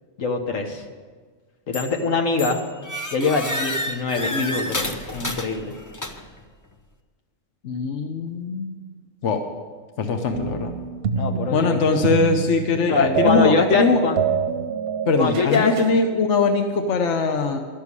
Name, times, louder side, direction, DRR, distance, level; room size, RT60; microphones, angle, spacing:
voice 1, 0.2-0.8 1.7-2.6 3.1-5.7 11.1-12.0 12.9-14.1 15.2-15.8, left 4 dB, 80° left, 3 dB, 1.6 m, -23 dB
sound 1, 1.7-2.1 2.4-6.4, left 1 dB, 20° left, 0.6 m, -30 dB
voice 2, 7.6-8.7 9.2-9.4 10.0-10.7 11.5-14.0 15.1-17.6, left 4 dB, 65° left, 5 dB, 1.2 m, -21 dB
sound 2, 10.3-16.0, right 6 dB, 55° right, 0.8 m, -26 dB
12.0 x 6.8 x 9.6 m, 1.5 s
omnidirectional pair, 1.3 m